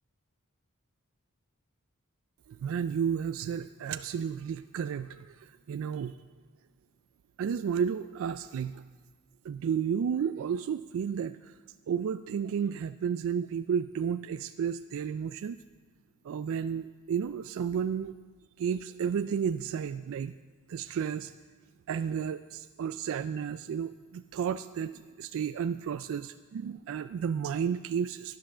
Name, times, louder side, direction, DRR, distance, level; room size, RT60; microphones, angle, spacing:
voice 1, 2.6-5.3 5.7-6.2 7.4-8.8 9.4-11.5 11.9-15.6 16.2-18.1 18.6-20.3 20.7-21.3 21.9-28.4, right 7 dB, 65° right, 11 dB, 0.3 m, -32 dB
10.0 x 9.7 x 6.1 m, 1.5 s
head